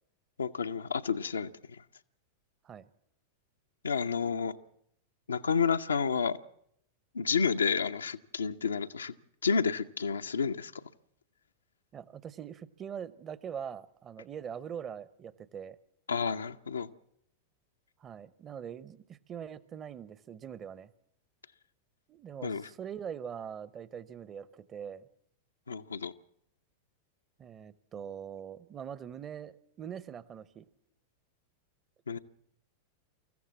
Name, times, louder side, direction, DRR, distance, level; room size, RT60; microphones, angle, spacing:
voice 1, 0.4-1.5 3.8-4.6 5.3-6.4 7.1-9.1 9.4-10.7 16.1-16.9 22.4-22.7 25.7-26.1 32.1-32.2, left 6 dB, 75° left, 9 dB, 0.7 m, -30 dB
voice 2, 11.9-15.8 18.0-20.9 22.1-25.1 27.4-30.7, right 8 dB, 25° right, 18 dB, 0.9 m, -43 dB
24.5 x 15.0 x 7.4 m, 0.72 s
figure-of-eight pair, 90°, 0 cm